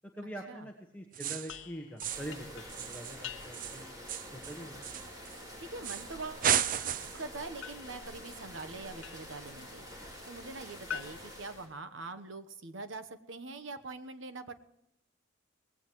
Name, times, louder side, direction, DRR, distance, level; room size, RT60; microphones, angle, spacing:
voice 1, 0.2-3.9 4.3-4.8, right 1 dB, 10° left, -1 dB, 1.3 m, -44 dB
sound 1, 1.1-1.6 2.0-2.4 2.7-5.4 5.8-6.1 6.4-7.3, right 9 dB, 40° right, 0.4 m, -33 dB
sound 2, 1.5-3.9 7.6-9.5 10.9-12.4, left 9 dB, 80° left, 0.7 m, -47 dB
sound 3, 2.0-11.7, equal, 20° right, 3.9 m, -47 dB
voice 2, 5.6-6.5 7.1-9.9 10.2-14.5, right 3 dB, 75° right, 9 dB, 1.0 m, -43 dB
19.0 x 16.5 x 3.1 m, 0.86 s
head